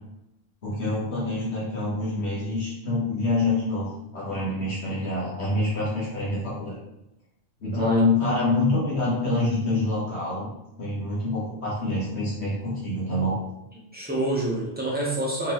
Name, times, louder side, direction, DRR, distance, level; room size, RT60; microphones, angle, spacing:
voice 1, 0.6-6.8 7.6-10.5 10.8-13.4, left 2 dB, 80° left, -8 dB, 1.5 m, -26 dB
voice 2, 7.7-8.0 13.7-15.5, right 1 dB, 10° right, -5 dB, 0.9 m, -27 dB
3.7 x 3.6 x 3.0 m, 0.88 s
omnidirectional pair, 1.1 m